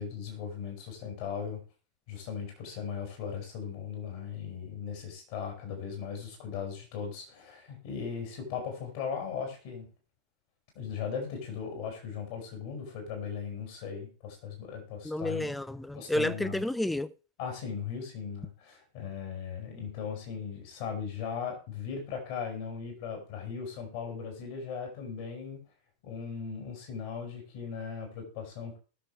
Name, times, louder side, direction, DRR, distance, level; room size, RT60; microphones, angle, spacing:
voice 1, 0.0-1.6 2.1-9.8 10.7-15.5 15.9-16.6 17.4-25.6 26.0-28.8, left 6 dB, 50° left, 6.0 m, -38 dB
voice 2, 15.0-17.1, left 1 dB, 5° left, 0.6 m, -31 dB
20.5 x 7.1 x 3.3 m
figure-of-eight pair, 90°, 0 cm